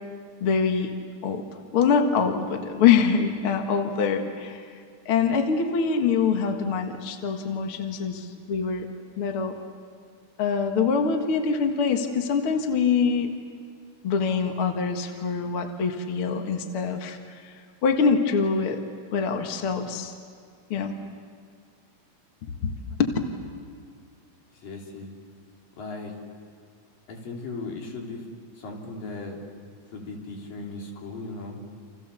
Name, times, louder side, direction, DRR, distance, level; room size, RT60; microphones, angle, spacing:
voice 1, 0.4-0.9 1.2-1.4 1.7-4.7 5.1-8.9 9.2-9.5 10.4-13.3 14.0-17.2 17.4-17.5 17.8-18.8 19.1-20.1 20.7-20.9 22.6-22.7 23.0-23.1, left 6 dB, 45° left, 4 dB, 2.1 m, -24 dB
voice 2, 24.5-25.1 25.8-26.1 27.1-28.2 28.6-29.4 29.9-31.6, left 3 dB, 75° left, 0 dB, 5.0 m, -37 dB
29.5 x 28.5 x 7.0 m, 2.1 s
omnidirectional pair, 3.9 m